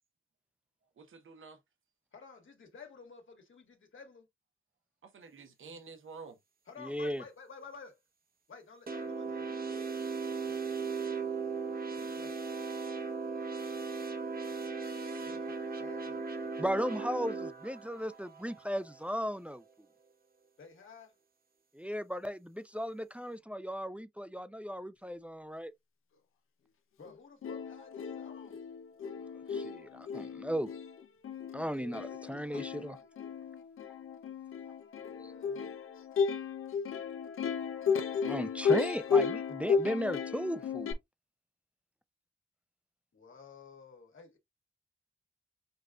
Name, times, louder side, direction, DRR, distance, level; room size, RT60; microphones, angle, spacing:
voice 1, 1.0-1.6 5.0-6.4, right 4 dB, 75° right, 1.0 m, -50 dB
voice 2, 2.1-4.3 6.7-7.9 8.5-10.0 10.5-11.1 11.9-12.5 15.2-16.5 20.6-21.1 27.0-28.6 31.7-32.7 35.0-35.8 43.1-44.4, left 5 dB, 70° left, 1.6 m, -53 dB
voice 3, 6.8-7.2 16.6-19.6 21.7-25.7 29.5-30.7 31.5-33.0 35.2-35.3 38.2-40.9, equal, 5° right, 0.4 m, -36 dB
sound 1, 8.9-19.4, right 4 dB, 45° right, 1.0 m, -38 dB
Plucked string instrument, 27.1-27.2 27.4-40.9, left 6 dB, 85° left, 0.7 m, -34 dB
6.6 x 2.4 x 2.3 m
cardioid pair, 65°, 21 cm